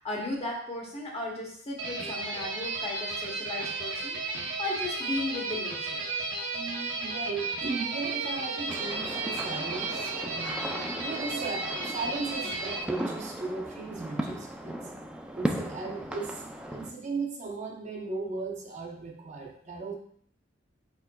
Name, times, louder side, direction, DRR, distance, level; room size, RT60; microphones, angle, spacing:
voice 1, 0.0-4.2 4.6-6.1, left 2 dB, 30° left, -2 dB, 1.0 m, -35 dB
sound 1, 1.8-12.8, right 3 dB, 70° right, 0.8 m, -34 dB
voice 2, 6.5-10.7 11.0-14.8 15.3-16.4 16.7-19.9, right 3 dB, 40° right, -1 dB, 0.7 m, -36 dB
sound 2, 8.7-16.9, right 1 dB, 5° right, 0.3 m, -37 dB
4.9 x 4.5 x 2.2 m, 0.62 s
head